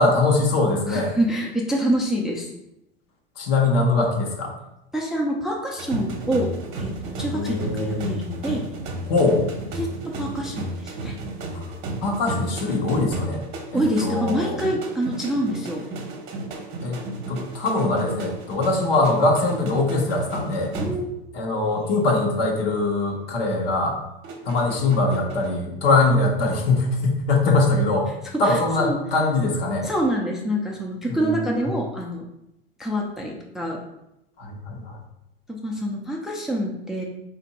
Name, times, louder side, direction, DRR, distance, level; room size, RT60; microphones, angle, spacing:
voice 1, 0.0-1.1 3.4-4.5 7.3-8.2 9.0-9.4 11.5-11.6 12.0-13.4 13.7-14.6 16.8-17.0 17.3-20.7 21.3-24.0 24.4-28.1 28.4-29.9 31.1-31.7 34.4-35.0, left 2 dB, 75° left, 0 dB, 1.1 m, -22 dB
voice 2, 0.9-2.5 4.9-6.5 6.8-8.6 9.8-11.2 13.7-15.8 20.8-21.1 28.4-29.0 29.8-32.3 32.8-33.8 35.5-37.0, equal, ahead, -1 dB, 0.4 m, -26 dB
sound 1, 5.8-21.4 21.7-22.0 24.2-25.5, right 2 dB, 45° right, 0.8 m, -33 dB
3.6 x 2.6 x 4.1 m, 0.85 s
supercardioid pair, 120°, 29 cm